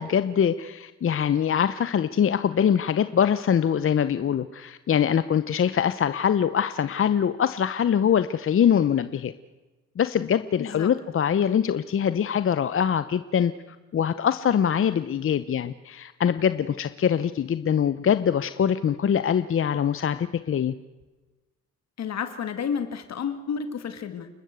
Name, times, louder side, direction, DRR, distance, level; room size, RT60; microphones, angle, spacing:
voice 1, 0.0-9.3 10.0-20.7, left 8 dB, 45° left, 13 dB, 0.8 m, -23 dB
voice 2, 10.6-10.9 22.0-24.3, left 7 dB, 60° left, 9 dB, 1.9 m, -31 dB
29.5 x 12.5 x 8.2 m, 1.2 s
cardioid pair, 90°, 30 cm